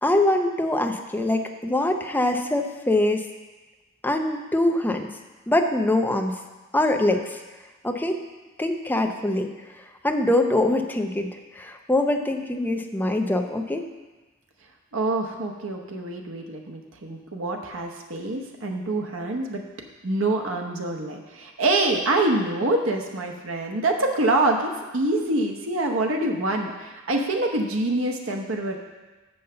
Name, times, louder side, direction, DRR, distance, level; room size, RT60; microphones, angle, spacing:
voice 1, 0.0-3.2 4.0-5.1 5.5-6.4 6.7-7.4 7.8-8.2 8.6-9.5 10.0-13.9, left 1 dB, 10° left, 4 dB, 0.5 m, -23 dB
voice 2, 14.9-19.6 20.0-28.8, right 2 dB, 85° right, 2 dB, 0.9 m, -25 dB
6.8 x 5.6 x 6.6 m, 1.2 s
head